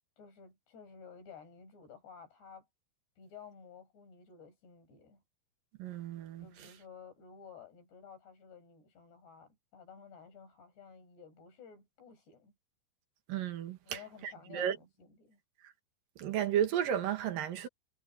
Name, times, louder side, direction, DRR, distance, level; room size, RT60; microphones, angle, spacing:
voice 1, 0.2-2.7 3.2-5.2 6.4-12.5 13.9-15.4, left 6 dB, 80° left, 9.8 m, -54 dB
voice 2, 5.8-6.5 13.3-14.0 14.5-14.8 16.2-17.7, right 9 dB, 65° right, 2.9 m, -33 dB
omnidirectional pair, 4.8 m